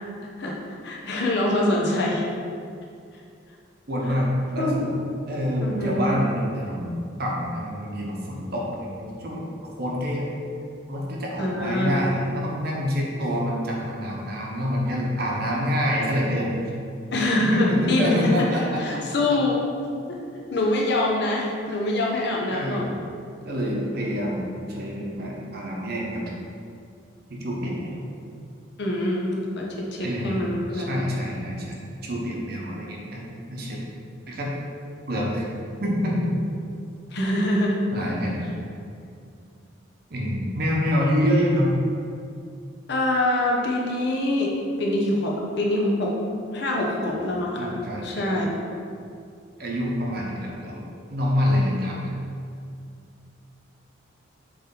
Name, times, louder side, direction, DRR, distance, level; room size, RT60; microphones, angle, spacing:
voice 1, 0.8-2.3 4.1-4.2 4.6-4.7 5.6-6.2 11.4-12.0 17.1-19.6 20.1-20.2 20.5-22.8 28.8-30.9 37.1-37.8 42.9-46.2 46.5-47.7 48.0-48.5, left 1 dB, 55° left, -2 dB, 0.9 m, -24 dB
voice 2, 3.9-5.0 5.3-9.4 9.8-10.3 10.9-16.6 17.3-19.0 19.3-19.4 22.5-22.9 23.4-26.2 27.3-28.0 30.0-33.2 33.5-33.8 34.3-34.5 35.1-35.4 35.8-36.3 37.9-38.4 40.1-41.7 46.8-47.2 47.5-48.3 49.6-50.8 51.1-52.0, equal, 50° right, -2 dB, 1.0 m, -26 dB
7.4 x 3.4 x 3.9 m, 2.4 s
head